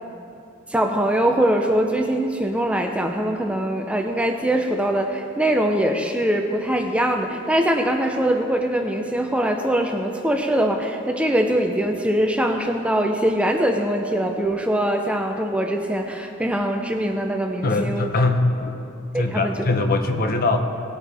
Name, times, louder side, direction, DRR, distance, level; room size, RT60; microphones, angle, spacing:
voice 1, 0.7-18.1 19.1-19.7, right 1 dB, 5° right, 4 dB, 0.5 m, -22 dB
voice 2, 17.6-18.7 19.1-20.6, left 2 dB, 45° left, 6 dB, 0.8 m, -21 dB
18.5 x 8.8 x 3.4 m, 2.7 s
head